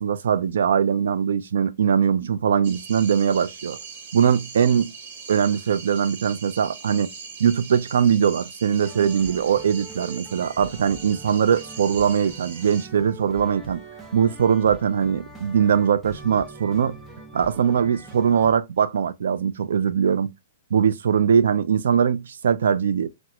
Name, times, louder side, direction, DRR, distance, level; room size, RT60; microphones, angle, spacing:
voice 1, 0.0-3.8 4.1-4.9 5.3-7.1 7.4-13.8 14.1-17.0 17.3-20.3 20.7-23.1, right 7 dB, 80° right, 0.3 m, -21 dB
sound 1, 2.6-12.9, right 5 dB, 55° right, 1.0 m, -41 dB
sound 2, 8.8-18.5, right 1 dB, 5° right, 0.5 m, -43 dB
4.3 x 2.0 x 2.3 m
hypercardioid pair, 170°, 0 cm